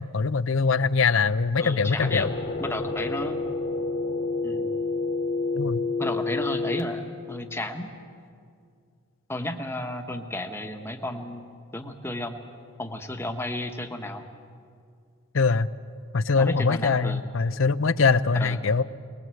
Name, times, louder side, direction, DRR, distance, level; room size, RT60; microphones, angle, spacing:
voice 1, 0.0-2.3 5.5-5.8 15.3-15.7 16.1-18.8, left 4 dB, 70° left, 16 dB, 0.6 m, -23 dB
voice 2, 1.6-3.6 4.4-4.8 6.0-7.9 9.3-12.4 12.8-14.3 16.4-17.2 18.3-18.6, left 1 dB, 10° left, 5 dB, 1.2 m, -33 dB
sound 1, 2.0-6.8, left 3 dB, 55° left, 1.5 m, -29 dB
23.0 x 20.5 x 7.7 m, 2.3 s
head